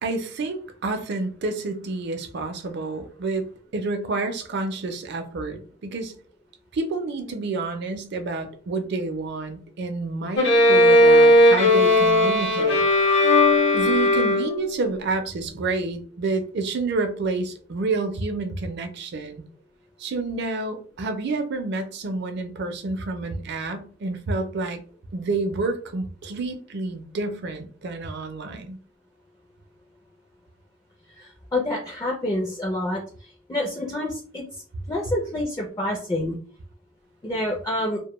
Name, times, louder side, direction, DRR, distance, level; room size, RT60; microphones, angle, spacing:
voice 1, 0.0-6.1 6.7-12.9 13.7-19.4 20.0-24.8 25.1-28.8, right 3 dB, 60° right, 0.4 m, -29 dB
Bowed string instrument, 10.4-14.8, left 1 dB, 65° left, 0.8 m, -17 dB
voice 2, 31.2-34.6 34.9-36.4 37.2-38.0, left 1 dB, 20° left, 0.4 m, -28 dB
2.1 x 2.1 x 2.9 m
head